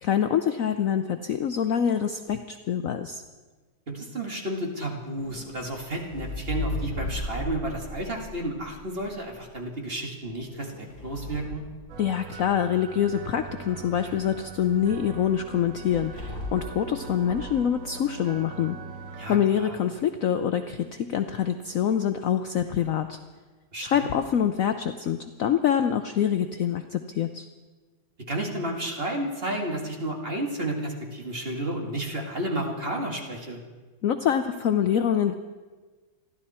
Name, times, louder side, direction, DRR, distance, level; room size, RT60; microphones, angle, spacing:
voice 1, 0.0-3.2 12.0-18.8 19.3-23.2 23.8-27.5 34.0-35.3, left 9 dB, 80° left, 8 dB, 0.7 m, -25 dB
voice 2, 3.9-11.7 19.2-19.8 23.7-24.1 28.3-33.6, right 1 dB, 30° right, 1 dB, 2.2 m, -32 dB
sound 1, 5.2-9.3 10.2-12.6 15.9-16.7 17.1-17.6, left 1 dB, 30° left, 5.3 m, -36 dB
sound 2, 11.9-19.4, right 5 dB, 70° right, 2.1 m, -41 dB
27.5 x 12.0 x 4.3 m, 1.3 s
omnidirectional pair, 2.2 m